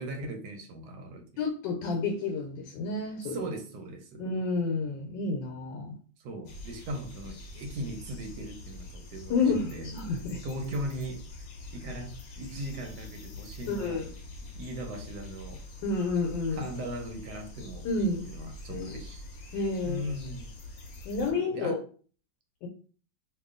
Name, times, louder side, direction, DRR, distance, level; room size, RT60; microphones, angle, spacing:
voice 1, 0.0-1.2 3.2-4.3 6.2-9.9 10.4-11.2 11.7-14.0 14.6-15.6 16.5-19.2 19.5-20.5 21.2-21.8, right 1 dB, 65° right, 4 dB, 1.3 m, -38 dB
voice 2, 1.4-3.4 4.2-6.0 9.3-10.4 13.7-14.1 15.8-16.6 17.8-18.2 18.7-19.0 19.5-20.0 21.0-21.8 22.6-22.7, left 3 dB, 80° left, 2 dB, 1.3 m, -30 dB
sound 1, 6.4-21.3, left 2 dB, 60° left, 1.1 m, -44 dB
2.9 x 2.7 x 3.6 m, 0.41 s
omnidirectional pair, 2.0 m